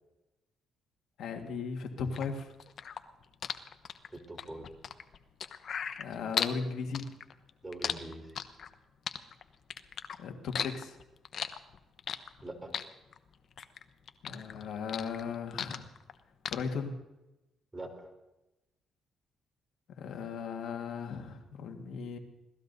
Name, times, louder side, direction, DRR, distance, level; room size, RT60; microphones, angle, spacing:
voice 1, 1.2-2.5 6.0-7.1 10.2-11.0 14.2-15.9 16.5-16.9 20.0-22.2, left 5 dB, 75° left, 4 dB, 1.7 m, -37 dB
sound 1, 2.1-6.6 6.9-8.7 9.1-10.2 10.5-12.4 12.7-13.8 14.1-16.1 16.4-16.5, left 7 dB, 60° left, 0.9 m, -36 dB
voice 2, 4.1-4.7 7.6-8.4 12.4-12.7 17.7-18.1, right 2 dB, 15° right, 3 dB, 3.5 m, -43 dB
26.0 x 18.0 x 2.7 m, 0.97 s
cardioid pair, 90°, 0 cm